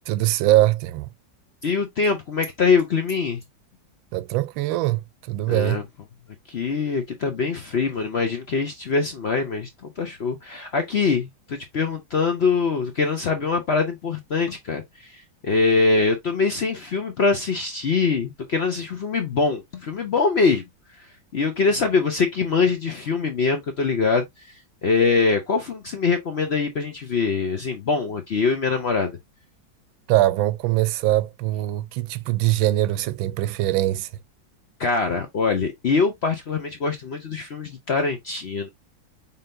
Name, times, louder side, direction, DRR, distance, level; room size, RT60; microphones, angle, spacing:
voice 1, 0.1-1.1 4.1-5.8 30.1-34.1, right 15 dB, 85° right, 1.3 m, -22 dB
voice 2, 1.6-3.4 5.5-5.8 6.5-20.6 21.0-21.1 21.3-24.3 24.8-29.2 34.8-38.7, left 4 dB, 65° left, 0.6 m, -23 dB
5.6 x 3.5 x 2.6 m
omnidirectional pair, 2.1 m